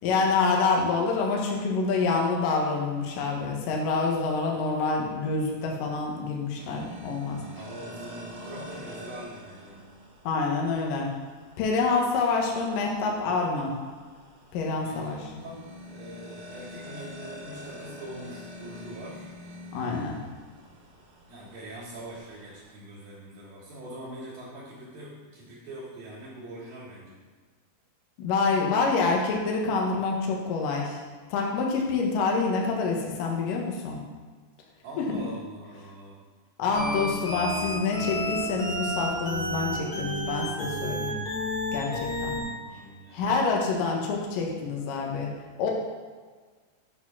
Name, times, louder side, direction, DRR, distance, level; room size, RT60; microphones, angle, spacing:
voice 1, 0.0-7.4 10.2-11.1 11.6-13.7 14.5-15.2 19.7-20.2 28.2-31.0 31.3-34.0 35.0-35.2 36.6-41.1 41.7-42.4 43.1-45.3 45.6-45.7, left 4 dB, 70° left, -1 dB, 2.3 m, -27 dB
sound 1, 6.5-22.7, left 1 dB, 70° right, 3.4 m, -46 dB
voice 2, 7.4-9.9 14.8-19.3 21.3-27.2 34.8-36.2 42.4-43.7, right 1 dB, 55° right, -11 dB, 3.3 m, -43 dB
sound 2, 36.7-42.4, equal, 45° left, 2.1 m, -31 dB
8.4 x 4.3 x 5.9 m, 1.4 s
omnidirectional pair, 5.2 m